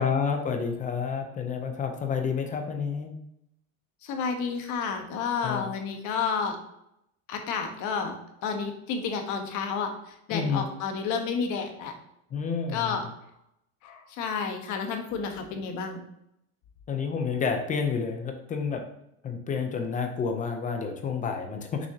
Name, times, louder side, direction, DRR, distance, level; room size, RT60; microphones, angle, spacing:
voice 1, 0.0-3.1 5.4-5.6 10.3-10.7 12.3-13.0 16.9-18.8 19.2-21.9, left 5 dB, 20° left, 5 dB, 0.5 m, -29 dB
voice 2, 4.0-6.6 7.3-11.9 12.7-13.0 13.8-16.0, left 5 dB, 45° left, 5 dB, 1.2 m, -31 dB
6.5 x 6.0 x 2.8 m, 0.79 s
cardioid pair, 160°, 42 cm